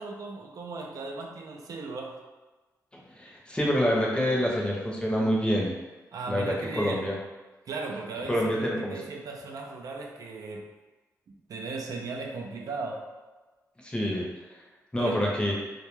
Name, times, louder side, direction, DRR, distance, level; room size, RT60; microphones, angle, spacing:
voice 1, 0.0-2.2 6.1-7.0 7.7-10.7 11.5-13.1 15.0-15.4, right 3 dB, 70° right, 1 dB, 0.3 m, -37 dB
voice 2, 2.9-5.8 6.3-7.2 8.3-9.0 13.8-14.3 14.9-15.5, equal, 15° left, -3 dB, 0.6 m, -27 dB
Sigh, 3.9-4.5, left 2 dB, 60° left, 0.6 m, -44 dB
2.2 x 2.1 x 3.0 m, 1.2 s
cardioid pair, 80°, 6 cm